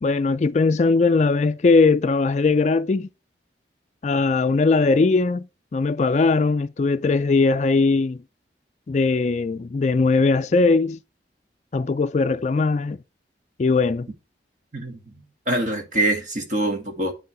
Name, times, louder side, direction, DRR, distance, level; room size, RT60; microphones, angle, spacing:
voice 1, 0.0-3.1 4.0-5.5 5.7-8.2 8.9-11.0 11.7-13.0 13.6-14.1, left 3 dB, 40° left, 0.3 m, -20 dB
voice 2, 14.7-15.1 15.5-17.1, right 1 dB, 45° right, 2.0 m, -24 dB
9.4 x 3.8 x 4.7 m
head